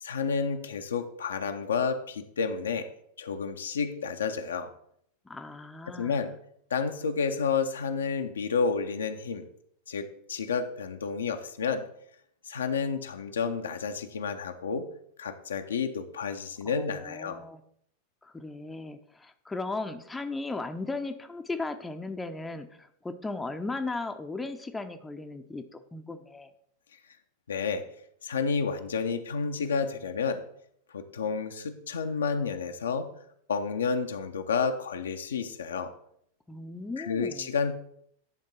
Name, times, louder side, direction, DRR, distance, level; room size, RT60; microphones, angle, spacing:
voice 1, 0.0-2.9 3.2-4.7 6.0-6.3 6.7-9.5 9.9-11.8 12.5-14.8 15.2-17.4 27.5-27.8 28.2-30.4 30.9-33.1 33.5-35.9 37.0-37.7, left 5 dB, 65° left, 7 dB, 0.7 m, -30 dB
voice 2, 5.3-6.2 16.6-17.6 18.2-26.5 36.5-37.5, left 3 dB, 10° left, 7 dB, 0.7 m, -36 dB
10.5 x 3.6 x 5.6 m, 0.69 s
figure-of-eight pair, 90°, 0 cm